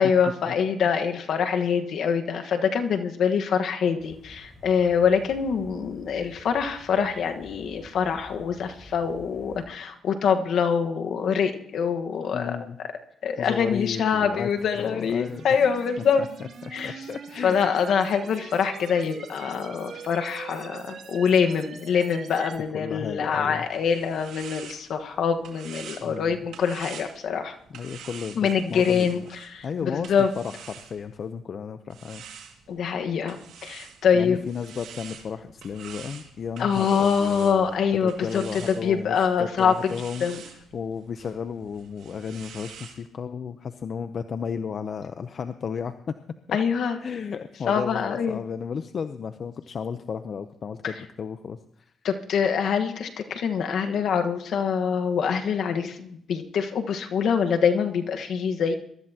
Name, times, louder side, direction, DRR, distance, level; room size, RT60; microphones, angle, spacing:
voice 1, 0.0-12.6 13.2-16.2 16.7-17.0 17.4-27.6 28.4-30.3 32.7-34.4 36.6-39.9 40.2-40.4 46.5-47.0 47.7-48.4 50.8-50.9 52.0-58.7, left 6 dB, 65° left, 6 dB, 1.4 m, -25 dB
sound 1, 4.0-9.7, equal, 30° left, 4.8 m, -49 dB
voice 2, 12.3-12.8 13.4-14.5 14.8-15.4 16.2-17.7 22.7-23.6 26.0-26.4 27.7-29.2 29.6-32.2 34.1-37.7 38.0-46.1 46.5-46.6 47.0-51.9, left 6 dB, 50° left, 10 dB, 0.7 m, -34 dB
sound 2, 14.6-22.6, right 6 dB, 55° right, 2.5 m, -43 dB
sound 3, 23.5-31.3 31.9-43.0, right 8 dB, 75° right, 2.2 m, -46 dB
22.5 x 13.0 x 2.9 m, 0.69 s
cardioid pair, 90°, 0 cm